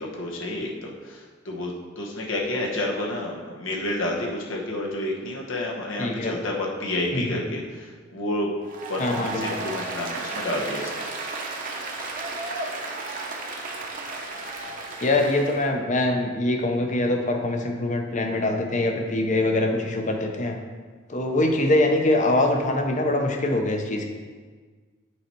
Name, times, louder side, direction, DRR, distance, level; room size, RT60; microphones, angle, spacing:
voice 1, 0.0-8.5 8.9-11.1, left 1 dB, 80° left, -1 dB, 1.2 m, -30 dB
voice 2, 6.0-6.3 7.1-7.4 9.0-9.4 15.0-20.5 21.1-24.0, left 2 dB, 40° left, 4 dB, 0.7 m, -23 dB
Applause, 8.6-15.7, right 3 dB, 45° right, 0.9 m, -33 dB
7.6 x 4.3 x 4.5 m, 1.5 s
head